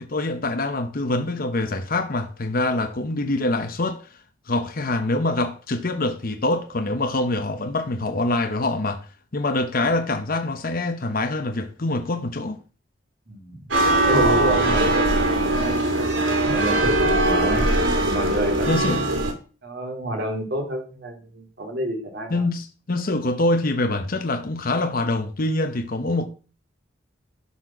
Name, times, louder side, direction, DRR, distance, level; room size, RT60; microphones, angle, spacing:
voice 1, 0.0-4.2 4.5-9.1 9.3-12.6 18.7-19.0 22.3-26.2, left 2 dB, 50° left, 0.9 m, -25 dB
sound 1, 13.7-19.3, right 1 dB, 90° right, 2.5 m, -21 dB
voice 2, 14.0-15.8 16.4-17.7 18.0-19.0 19.6-22.4, right 1 dB, 60° right, 3.3 m, -28 dB
12.0 x 4.4 x 6.0 m
head